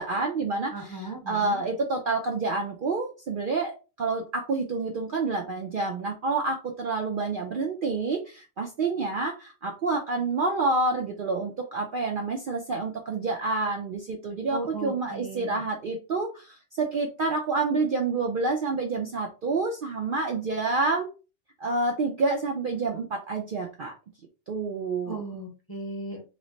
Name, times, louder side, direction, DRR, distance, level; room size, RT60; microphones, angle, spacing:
voice 1, 0.0-21.1 21.6-23.9 24.5-25.2, right 3 dB, 60° right, 2 dB, 0.6 m, -28 dB
voice 2, 0.7-1.6 14.5-15.6 25.0-26.2, right 2 dB, 20° left, -1 dB, 0.8 m, -36 dB
3.1 x 2.0 x 3.8 m, 0.32 s
omnidirectional pair, 1.3 m